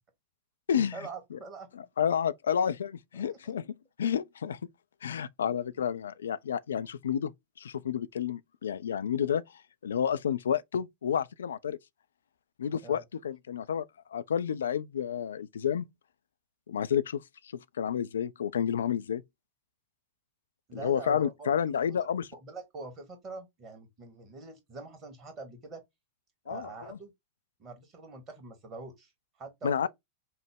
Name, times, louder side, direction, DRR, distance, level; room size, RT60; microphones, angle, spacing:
voice 1, 0.8-1.7 3.3-3.4 12.8-13.0 20.7-21.5 21.8-21.9 22.4-25.8 26.4-27.1 27.6-29.1 29.4-29.9, right 3 dB, 30° right, 1.5 m, -44 dB
voice 2, 1.7-4.6 5.0-7.3 7.6-11.8 12.6-13.8 14.1-15.8 16.7-17.2 17.5-19.2 20.7-22.3 26.5-27.0 29.6-29.9, left 8 dB, 65° left, 0.3 m, -30 dB
5.4 x 2.1 x 3.5 m
figure-of-eight pair, 90°, 0 cm